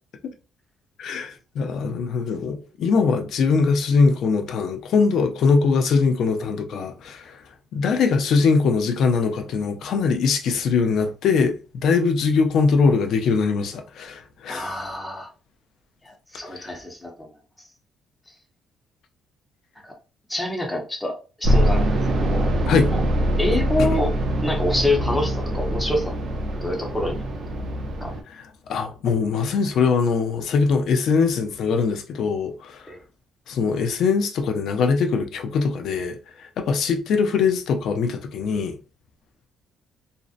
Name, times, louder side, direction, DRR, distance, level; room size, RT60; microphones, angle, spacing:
voice 1, 1.0-7.4 7.7-14.8 16.5-16.7 22.7-22.9 23.8-23.9 28.3-32.8 33.5-38.8, left 5 dB, 55° left, 0.4 m, -22 dB
voice 2, 14.5-15.3 16.0-17.1 19.8-19.9 20.3-22.5 22.9-23.0 23.4-24.1 24.4-26.1 26.6-27.3 28.0-28.1 32.9-33.0, left 1 dB, 5° left, 0.6 m, -26 dB
sound 1, 21.4-28.2, equal, 40° right, 0.4 m, -23 dB
2.6 x 2.0 x 2.4 m
cardioid pair, 170°, 0 cm